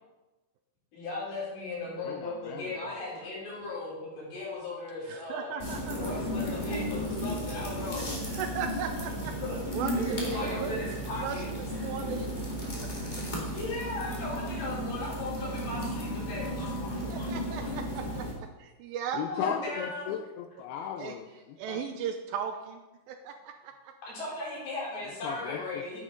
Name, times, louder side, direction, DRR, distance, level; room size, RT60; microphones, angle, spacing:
voice 1, 0.9-5.5 5.9-8.1 9.1-11.5 13.5-17.3 19.3-20.1 24.1-26.0, left 2 dB, 75° left, -6 dB, 5.9 m, -37 dB
voice 2, 2.0-3.0 3.5-3.6 19.1-21.8 25.2-25.9, left 8 dB, 90° left, 4 dB, 2.6 m, -37 dB
voice 3, 5.1-6.0 8.3-9.3 9.7-10.7 11.2-12.3 12.6-12.9 17.1-19.2 21.0-21.1 21.6-23.9, right 7 dB, 80° right, 6 dB, 2.3 m, -37 dB
sound 1, 5.6-18.3, equal, 20° left, 1.3 m, -34 dB
10.0 x 9.2 x 3.9 m, 1.1 s
omnidirectional pair, 4.4 m